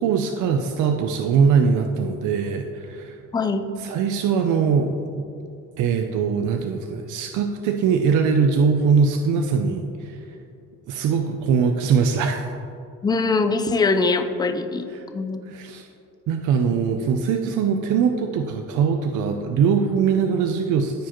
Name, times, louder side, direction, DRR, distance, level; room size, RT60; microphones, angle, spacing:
voice 1, 0.0-3.2 3.8-5.2 5.8-10.2 10.9-12.5 14.9-15.0 15.5-15.9 16.3-21.1, right 6 dB, 70° right, 5 dB, 0.5 m, -21 dB
voice 2, 3.3-3.7 13.0-14.9 15.1-15.4, left 3 dB, 15° left, 7 dB, 0.3 m, -22 dB
14.0 x 4.7 x 3.0 m, 2.6 s
cardioid pair, 150°, 32 cm